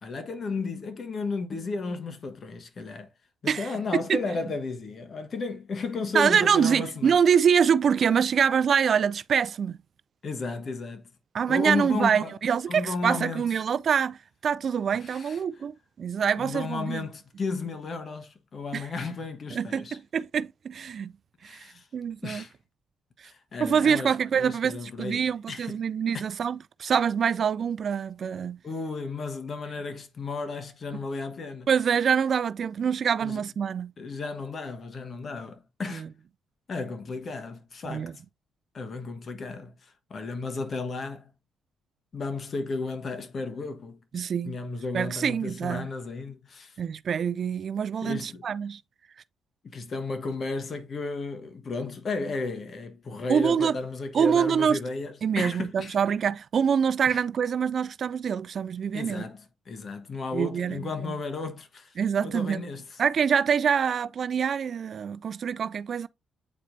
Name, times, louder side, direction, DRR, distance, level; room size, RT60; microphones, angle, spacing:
voice 1, 0.0-3.1 3.4-7.2 10.2-11.1 11.5-12.3 12.7-13.4 15.0-15.4 16.4-20.0 21.4-21.9 22.2-22.5 23.2-25.7 28.6-31.7 33.2-33.5 34.0-36.1 36.7-38.1 38.7-41.3 42.1-44.0 44.4-46.8 48.0-48.4 49.6-56.0 57.1-57.2 58.9-62.0 62.2-63.0, left 4 dB, 45° left, 1.3 m, -34 dB
voice 2, 3.5-4.2 6.1-9.8 11.3-17.0 18.7-18.9 19.5-21.1 21.4-21.7 21.9-22.4 23.6-28.6 31.7-33.9 37.9-38.1 44.1-44.5 44.9-45.9 46.8-48.8 53.3-53.8 54.1-54.8 55.2-59.2 60.3-61.1 62.0-62.7 63.0-66.1, right 7 dB, 55° right, 0.3 m, -25 dB
8.5 x 4.3 x 2.6 m
cardioid pair, 90°, 0 cm